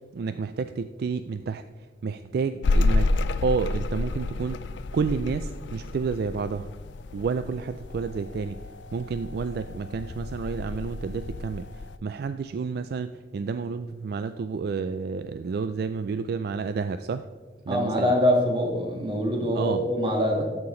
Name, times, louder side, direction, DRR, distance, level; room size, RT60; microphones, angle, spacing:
voice 1, 0.1-1.6 2.0-3.1 3.4-4.6 4.9-6.7 7.1-8.6 8.9-17.3 17.7-18.1 19.5-19.9, right 5 dB, 60° right, 11 dB, 0.3 m, -30 dB
sound 1, 2.6-12.0, left 2 dB, 75° left, 0.4 m, -30 dB
voice 2, 17.7-20.4, equal, 30° right, 0 dB, 1.8 m, -24 dB
13.0 x 6.0 x 3.8 m, 1.4 s
head